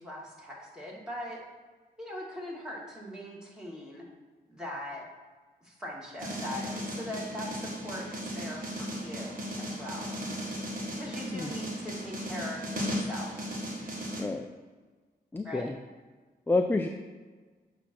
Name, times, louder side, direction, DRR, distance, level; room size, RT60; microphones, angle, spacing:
voice 1, 0.0-1.4 2.0-4.1 4.5-5.1 5.6-10.1 11.0-13.5 15.4-15.7, left 1 dB, 5° right, -4 dB, 2.1 m, -41 dB
sound 1, 6.2-14.2, equal, 55° right, 1.4 m, -36 dB
voice 2, 15.3-15.8 16.5-16.9, left 2 dB, 10° left, 5 dB, 0.4 m, -28 dB
7.8 x 2.9 x 6.0 m, 1.4 s
cardioid pair, 75°, 17 cm